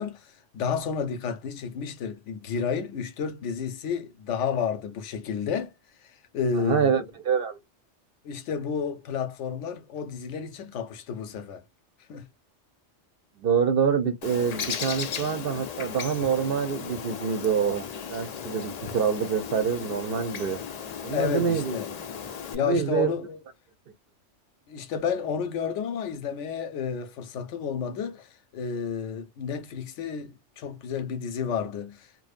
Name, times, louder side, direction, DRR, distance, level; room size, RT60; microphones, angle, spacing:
voice 1, 0.0-5.7 6.3-6.9 8.2-11.6 12.1-12.3 21.1-22.0 22.5-23.4 24.7-32.1, left 6 dB, 85° left, 0.9 m, -31 dB
voice 2, 6.5-7.6 13.4-20.6 21.0-21.8 22.5-23.1, right 6 dB, 60° right, 0.7 m, -26 dB
Bird, 14.2-22.6, left 7 dB, 65° left, 0.4 m, -36 dB
2.6 x 2.0 x 2.4 m
omnidirectional pair, 1.2 m